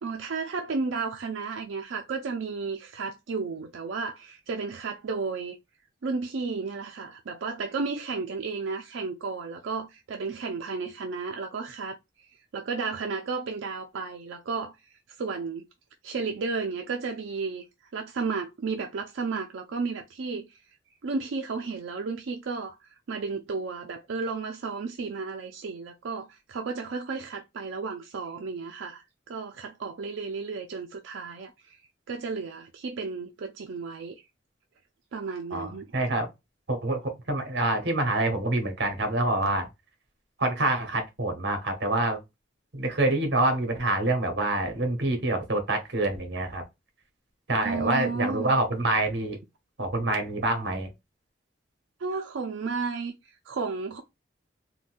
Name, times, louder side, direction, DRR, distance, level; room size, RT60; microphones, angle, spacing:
voice 1, 0.0-5.6 6.0-14.8 15.2-15.7 16.0-17.6 17.9-20.6 21.0-31.8 32.1-34.2 35.1-35.8 47.6-48.6 52.0-54.0, right 4 dB, 90° right, 0.4 m, -33 dB
voice 2, 35.5-36.3 36.7-39.7 40.4-42.2 42.7-46.6 47.5-49.4 49.8-50.9, right 2 dB, 65° right, 1.1 m, -26 dB
3.8 x 2.2 x 2.5 m
head